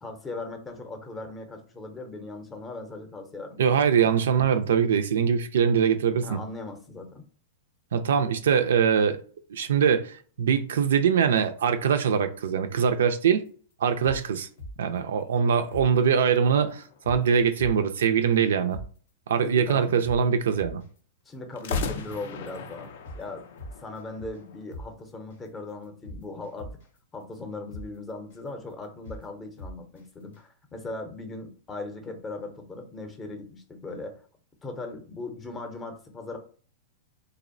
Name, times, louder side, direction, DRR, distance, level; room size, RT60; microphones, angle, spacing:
voice 1, 0.0-4.0 6.2-7.2 19.4-20.0 21.3-22.9 23.2-26.7 27.1-34.2 34.6-36.4, left 2 dB, 20° left, 0.6 m, -39 dB
voice 2, 3.6-6.4 7.9-9.2 9.5-13.4 13.8-14.5 14.8-18.8 19.3-20.8, right 7 dB, 85° right, 0.3 m, -23 dB
sound 1, 13.3-13.5 13.8-15.0 15.3-15.4 15.7-15.9 16.3-16.5 16.8-17.2 17.6-18.0 18.3-18.4 18.7-18.9 19.3-19.5 19.8-21.0 21.3-21.4 21.7-21.9 22.3-22.5 22.8-23.2 23.6-24.4 24.7-24.9 25.3-25.5 25.8-27.0 27.3-27.4 27.7-27.9 28.3-28.5 28.8-29.2 29.6-30.0 30.3-30.4, left 1 dB, 90° left, 0.8 m, -41 dB
sound 2, 15.7-17.5 21.5-24.6, left 4 dB, 70° left, 0.4 m, -37 dB
2.6 x 2.0 x 2.5 m
hypercardioid pair, 130°, 0 cm